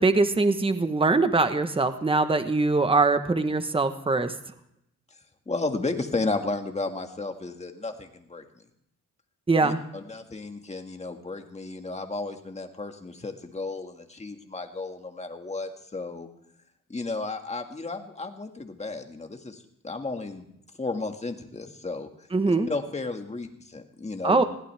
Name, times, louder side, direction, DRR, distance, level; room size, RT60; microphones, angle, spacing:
voice 1, 0.0-4.3 9.5-9.8 22.3-22.7 24.2-24.4, right 3 dB, 15° right, 9 dB, 1.2 m, -22 dB
voice 2, 5.5-8.6 9.6-16.3 16.9-20.5 20.8-22.1 22.5-24.4, left 3 dB, 20° left, 5 dB, 1.9 m, -33 dB
21.5 x 16.0 x 3.5 m, 0.77 s
cardioid pair, 110°, 32 cm